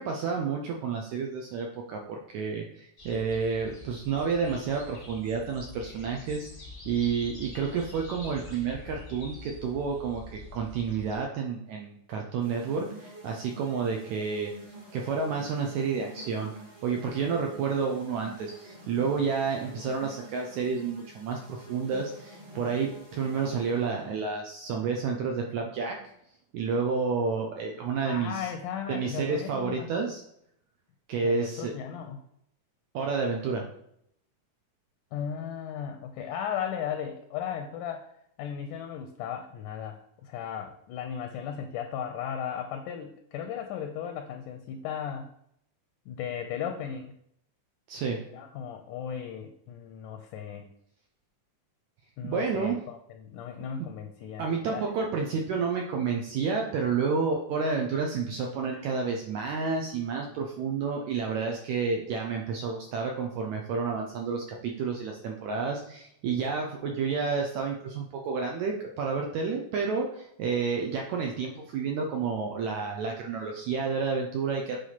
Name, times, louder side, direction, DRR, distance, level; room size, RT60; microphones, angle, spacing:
voice 1, 0.0-14.5 14.9-16.5 16.8-26.0 26.5-28.5 28.9-30.2 31.1-31.7 32.9-33.7 47.9-48.2 52.2-52.7 54.4-74.8, right 5 dB, 75° right, 1 dB, 1.7 m, -30 dB
sound 1, 3.0-11.2, left 2 dB, 30° left, 0.9 m, -46 dB
sound 2, 12.4-24.0, equal, 15° right, 0.6 m, -48 dB
voice 2, 28.0-29.9 31.2-32.2 35.1-38.1 38.4-45.3 46.1-47.2 48.3-50.7 52.2-54.9, left 8 dB, 80° left, 6 dB, 1.9 m, -36 dB
7.8 x 3.4 x 5.7 m, 0.72 s
omnidirectional pair, 4.1 m